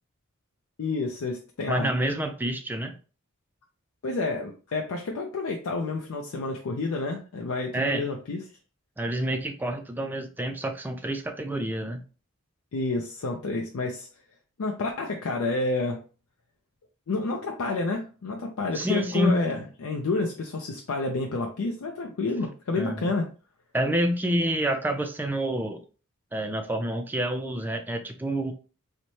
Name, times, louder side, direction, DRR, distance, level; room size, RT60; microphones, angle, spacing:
voice 1, 0.8-1.9 4.0-8.4 12.7-14.1 14.6-16.0 17.1-23.3, left 3 dB, 75° left, 2 dB, 0.5 m, -29 dB
voice 2, 1.7-2.9 7.7-8.1 9.0-12.0 18.7-19.5 22.8-23.1 23.7-25.8 26.3-28.5, right 1 dB, 10° right, 5 dB, 0.3 m, -28 dB
4.0 x 2.1 x 3.0 m, 0.36 s
head